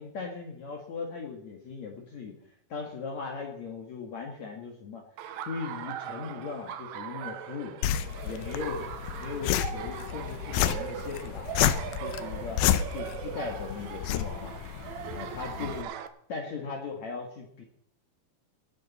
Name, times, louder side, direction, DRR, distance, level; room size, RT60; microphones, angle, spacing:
voice 1, 0.0-2.4 2.7-5.0 5.5-7.8 8.2-11.7 12.0-12.6 12.9-14.5 15.1-15.9 16.3-17.6, left 5 dB, 55° left, 1 dB, 2.6 m, -38 dB
Laughter, 5.2-16.1, right 10 dB, 75° right, 1.7 m, -40 dB
sound 1, 7.8-15.8, left 11 dB, 75° left, 2.4 m, -31 dB
19.5 x 11.5 x 4.2 m, 0.70 s
omnidirectional pair, 4.5 m